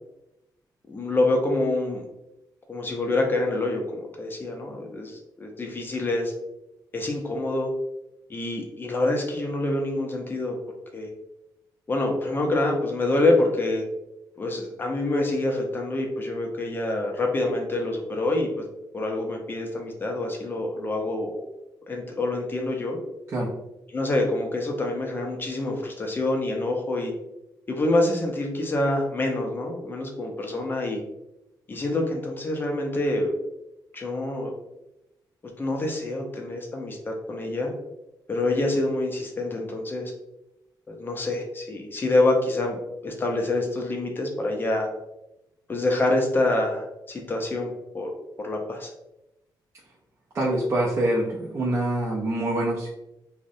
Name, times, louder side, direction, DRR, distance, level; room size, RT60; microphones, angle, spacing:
voice 1, 0.9-2.0 2.7-6.3 6.9-7.7 8.3-10.6 10.9-11.1 11.9-13.8 14.4-18.7 18.9-21.4 21.9-23.0 23.9-27.1 27.7-31.0 31.7-33.3 33.9-34.5 35.6-37.7 38.3-40.1 40.9-42.8 43.0-44.9 45.7-48.1 48.4-48.9, left 2 dB, 25° left, 1 dB, 0.4 m, -26 dB
voice 2, 50.3-52.9, right 1 dB, 35° right, -4 dB, 0.4 m, -25 dB
2.5 x 2.0 x 2.5 m, 0.89 s
cardioid pair, 125°, 8 cm